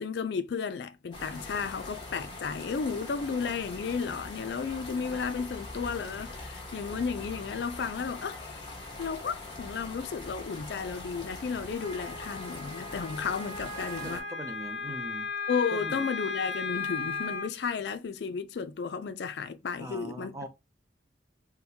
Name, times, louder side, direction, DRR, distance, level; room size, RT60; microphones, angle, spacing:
voice 1, 0.0-8.7 9.0-14.2 15.5-20.4, left 5 dB, 60° left, 0.4 m, -33 dB
sound 1, 1.1-14.2, left 2 dB, 25° left, 1.4 m, -42 dB
Wind instrument woodwind instrument, 11.8-17.5, left 4 dB, 40° left, 1.2 m, -36 dB
voice 2, 13.7-15.3 15.7-16.1 19.8-20.5, right 1 dB, 15° right, 0.5 m, -41 dB
3.9 x 2.2 x 2.7 m
head